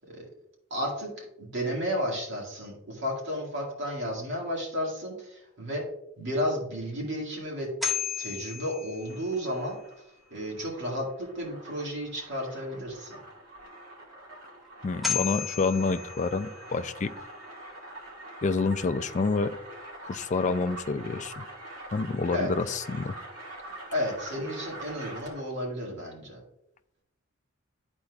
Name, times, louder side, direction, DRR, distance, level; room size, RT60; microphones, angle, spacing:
voice 1, 0.7-5.8 6.2-7.7 8.2-9.8 10.3-13.2 22.3-22.5 23.9-26.4, equal, 60° right, -1 dB, 1.9 m, -32 dB
sound 1, 7.6-9.7 14.6-14.7 15.0-16.9, left 6 dB, ahead, 0.7 m, -34 dB
sound 2, 8.9-25.6, right 1 dB, 85° right, 1.8 m, -45 dB
voice 2, 14.8-17.1 18.4-19.6 20.0-21.4 21.9-23.2, left 4 dB, 35° left, 10 dB, 0.4 m, -28 dB
11.5 x 4.3 x 2.4 m, 0.83 s
head